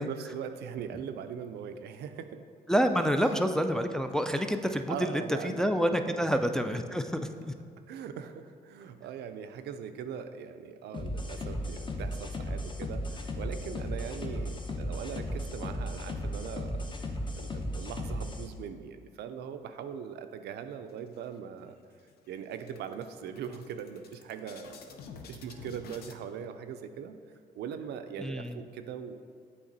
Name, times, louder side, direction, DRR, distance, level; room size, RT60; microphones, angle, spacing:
voice 1, 0.0-2.4 3.1-3.4 4.9-6.3 7.9-16.8 17.4-21.8 22.3-25.0 25.3-27.2 27.6-29.3, right 7 dB, 75° right, 8 dB, 0.4 m, -41 dB
voice 2, 2.7-7.5 28.2-28.6, equal, 5° left, 6 dB, 0.3 m, -28 dB
sound 1, 10.9-18.5, left 1 dB, 30° left, 0.7 m, -35 dB
sound 2, 20.9-21.6 22.0-22.1 22.4-26.2, left 5 dB, 65° left, 0.6 m, -50 dB
7.8 x 3.4 x 4.0 m, 2.2 s
cardioid pair, 85°, 17 cm